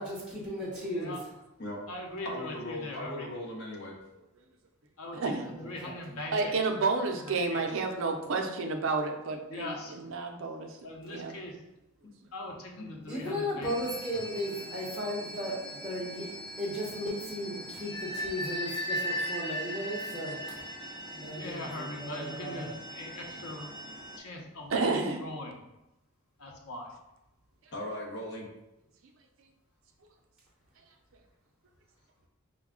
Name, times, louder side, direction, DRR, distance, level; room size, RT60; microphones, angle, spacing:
voice 1, 0.0-1.3 5.4-6.2 13.1-16.3 16.6-20.6 21.2-22.7, equal, 5° right, -6 dB, 0.9 m, -36 dB
voice 2, 0.9-1.2 1.9-3.3 5.0-5.2 5.4-6.5 7.3-7.6 9.5-10.0 10.8-11.6 12.3-13.7 21.1-23.7 24.2-24.7 25.2-25.6 26.4-26.9, left 1 dB, 85° left, -1 dB, 0.8 m, -41 dB
voice 3, 2.2-4.0 12.7-12.9 13.7-13.8 27.7-28.5, left 1 dB, 55° left, -2 dB, 0.8 m, -39 dB
voice 4, 5.1-5.5 6.3-10.8 11.0-11.4 24.7-25.2, right 3 dB, 65° right, 4 dB, 0.5 m, -30 dB
sound 1, 13.6-24.2, equal, 20° left, 0.6 m, -39 dB
4.7 x 2.2 x 3.6 m, 0.93 s
head